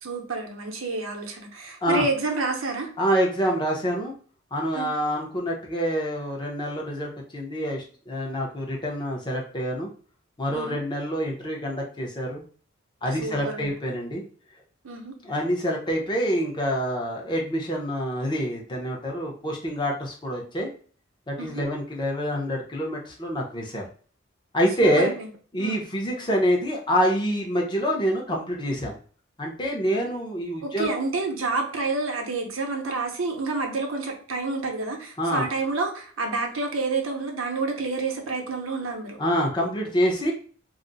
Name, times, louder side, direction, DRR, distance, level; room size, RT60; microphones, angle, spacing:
voice 1, 0.0-2.9 4.7-4.9 10.5-10.8 13.2-13.7 14.8-15.1 21.4-21.6 24.8-25.3 25.6-25.8 30.6-39.2, right 3 dB, 75° right, 3 dB, 0.7 m, -29 dB
voice 2, 3.0-4.1 4.5-9.9 10.4-12.4 13.0-14.2 15.2-20.7 21.3-23.8 24.5-25.1 25.5-29.0 29.4-30.9 35.2-35.4 39.2-40.3, equal, 20° left, -1 dB, 0.7 m, -26 dB
2.4 x 2.0 x 3.8 m, 0.43 s
head